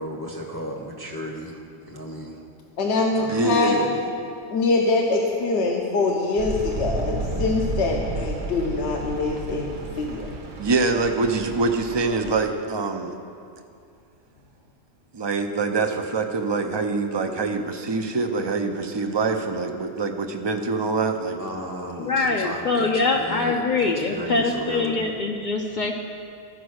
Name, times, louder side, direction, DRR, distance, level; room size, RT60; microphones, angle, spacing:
voice 1, 0.0-2.4 3.0-4.1 21.4-25.1, equal, 20° left, -1 dB, 0.7 m, -35 dB
voice 2, 2.8-3.8 4.5-10.3, left 3 dB, 70° left, 0 dB, 1.1 m, -24 dB
voice 3, 3.3-3.8 10.6-13.2 15.1-21.4, right 3 dB, 35° right, 5 dB, 0.4 m, -24 dB
sound 1, 6.4-12.5, right 2 dB, 75° right, 1.3 m, -32 dB
voice 4, 22.0-25.9, left 3 dB, 55° left, 1 dB, 0.6 m, -23 dB
13.5 x 5.1 x 6.3 m, 2.4 s
omnidirectional pair, 1.2 m